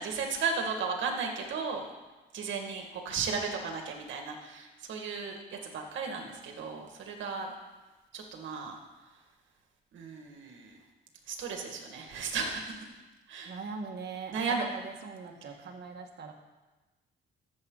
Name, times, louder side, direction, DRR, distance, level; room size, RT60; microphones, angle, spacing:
voice 1, 0.0-1.8 2.3-7.5 8.1-8.8 9.9-10.8 11.3-12.7 13.3-13.5 14.3-14.7, right 5 dB, 70° right, 2 dB, 2.1 m, -35 dB
voice 2, 13.5-16.3, right 5 dB, 55° right, 2 dB, 1.7 m, -41 dB
13.5 x 7.6 x 4.0 m, 1.2 s
cardioid pair, 90°, 20 cm